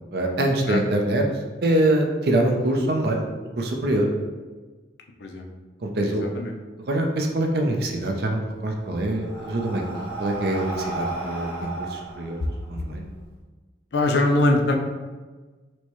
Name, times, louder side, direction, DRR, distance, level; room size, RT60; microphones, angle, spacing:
voice 1, 0.1-1.2 1.6-3.3 3.6-4.1 5.8-6.3 6.9-12.4 12.7-13.1, right 1 dB, 55° right, 2 dB, 0.5 m, -24 dB
voice 2, 6.0-6.6 13.9-14.8, left 2 dB, 65° left, 3 dB, 0.4 m, -22 dB
Breathing, 8.5-13.2, right 2 dB, 80° right, 1.3 m, -34 dB
4.4 x 2.1 x 2.9 m, 1.3 s
head